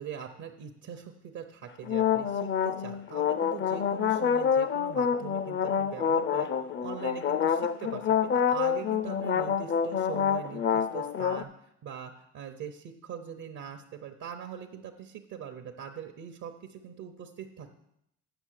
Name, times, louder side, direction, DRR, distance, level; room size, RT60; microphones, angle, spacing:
voice 1, 0.0-11.5 11.8-17.8, right 8 dB, 70° right, 5 dB, 0.8 m, -42 dB
sound 1, 1.8-11.4, left 7 dB, 40° left, 0.5 m, -27 dB
8.0 x 5.7 x 6.5 m, 0.78 s
cardioid pair, 90°, 30 cm